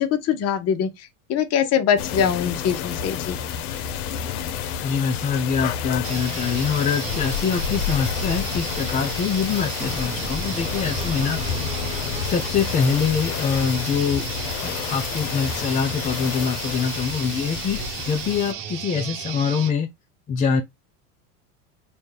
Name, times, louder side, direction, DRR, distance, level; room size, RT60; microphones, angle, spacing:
voice 1, 0.0-3.4, left 8 dB, 35° left, 0.8 m, -23 dB
sound 1, 2.0-18.5, left 8 dB, 80° left, 0.7 m, -29 dB
voice 2, 4.8-11.4 12.2-14.2 14.6-19.9 20.3-20.6, left 6 dB, 20° left, 0.3 m, -24 dB
sound 2, 6.0-19.7, right 9 dB, 50° right, 1.0 m, -34 dB
sound 3, 9.8-13.8, right 1 dB, 15° right, 0.8 m, -37 dB
4.0 x 2.3 x 3.2 m
supercardioid pair, 100°, 43 cm